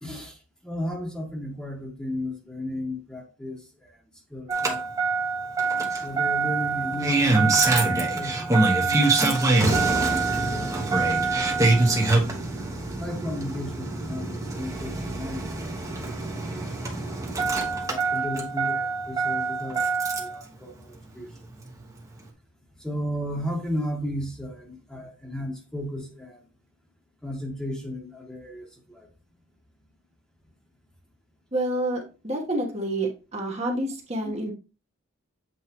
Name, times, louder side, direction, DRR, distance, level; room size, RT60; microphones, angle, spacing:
voice 1, 0.0-4.0 4.3-4.9 6.0-9.1 9.5-11.1 13.0-17.0 17.8-21.5 22.8-26.5 27.2-29.1 34.2-34.4, equal, 5° left, 1.4 m, -35 dB
Engine starting, 4.5-20.4 21.7-21.8, right 3 dB, 15° right, 1.1 m, -24 dB
voice 2, 31.5-34.5, right 1 dB, 30° right, 1.3 m, -28 dB
7.9 x 4.5 x 3.0 m
head